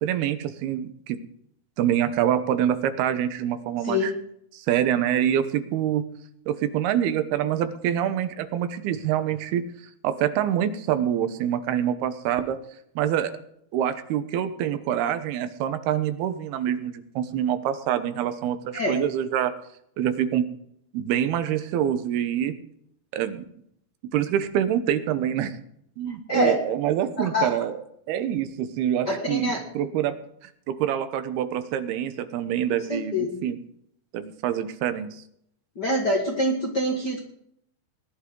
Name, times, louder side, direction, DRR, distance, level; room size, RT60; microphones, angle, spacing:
voice 1, 0.0-1.2 1.8-4.1 4.5-6.0 6.5-9.6 10.0-12.6 13.0-13.3 13.7-19.5 20.0-20.5 20.9-22.5 23.1-23.4 24.1-25.6 26.0-27.8 28.1-30.2 30.7-33.6 34.1-35.1, right 10 dB, 85° right, 10 dB, 3.0 m, -25 dB
voice 2, 27.2-27.5 29.1-29.6 32.9-33.4 35.7-37.2, left 1 dB, 40° left, 1 dB, 1.5 m, -25 dB
19.5 x 11.5 x 3.8 m, 0.72 s
omnidirectional pair, 4.4 m